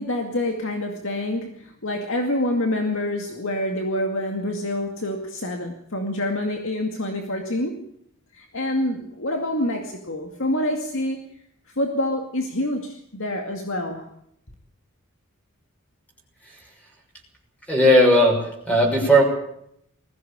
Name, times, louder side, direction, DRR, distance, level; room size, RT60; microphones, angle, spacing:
voice 1, 0.0-7.8 8.3-11.2 11.8-14.1, left 1 dB, 60° left, 3 dB, 2.2 m, -27 dB
voice 2, 17.7-18.4 18.7-19.2, equal, 5° left, 0 dB, 6.2 m, -16 dB
20.5 x 16.0 x 8.7 m, 0.73 s
head